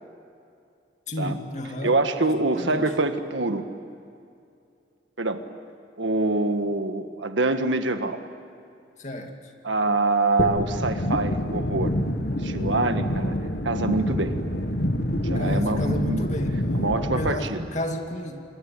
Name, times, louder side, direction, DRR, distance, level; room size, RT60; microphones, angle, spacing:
voice 1, 1.1-2.0 2.5-2.9 9.0-9.3 15.3-16.5 17.2-18.4, left 1 dB, 40° left, 3 dB, 2.5 m, -31 dB
voice 2, 1.8-3.6 5.2-5.4 6.0-8.2 9.6-11.9 12.4-13.4 13.6-14.4 15.2-16.2 16.8-17.7, right 2 dB, 80° right, 8 dB, 1.6 m, -25 dB
sound 1, 10.4-17.3, left 1 dB, 55° left, 1.8 m, -26 dB
27.0 x 22.0 x 9.8 m, 2.5 s
head